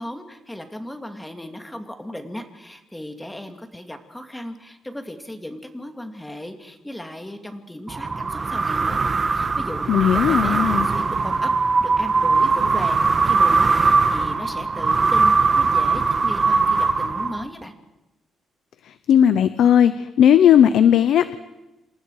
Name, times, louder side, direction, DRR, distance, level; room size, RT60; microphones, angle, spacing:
voice 1, 0.0-9.0 9.3-9.8 10.1-11.5 11.8-17.7, left 1 dB, 5° left, 5 dB, 2.5 m, -36 dB
sound 1, 7.9-17.6, right 4 dB, 25° right, 1.6 m, -20 dB
voice 2, 9.9-10.9 19.1-19.9 20.2-21.4, left 9 dB, 70° left, 12 dB, 0.9 m, -16 dB
28.0 x 27.0 x 4.9 m, 0.98 s
cardioid pair, 150°, 0 cm